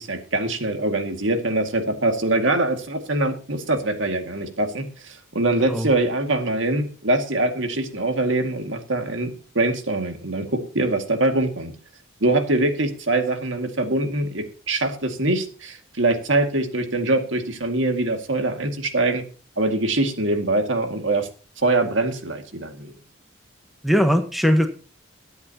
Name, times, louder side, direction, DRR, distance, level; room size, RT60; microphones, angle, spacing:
voice 1, 0.0-11.7 12.2-19.2 19.6-21.3 21.6-23.0, right 2 dB, 70° right, 6 dB, 2.1 m, -23 dB
voice 2, 23.8-24.7, equal, ahead, 5 dB, 1.2 m, -19 dB
22.5 x 8.1 x 2.9 m, 0.38 s
head